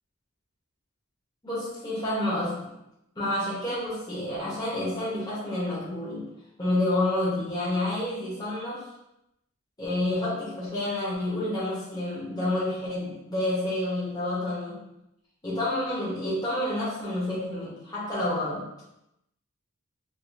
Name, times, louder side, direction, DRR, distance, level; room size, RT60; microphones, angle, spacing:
voice 1, 1.4-2.7 3.1-6.2 6.6-8.8 9.8-14.8 15.4-18.6, left 1 dB, 20° left, -9 dB, 1.1 m, -29 dB
3.6 x 2.6 x 2.7 m, 0.84 s
head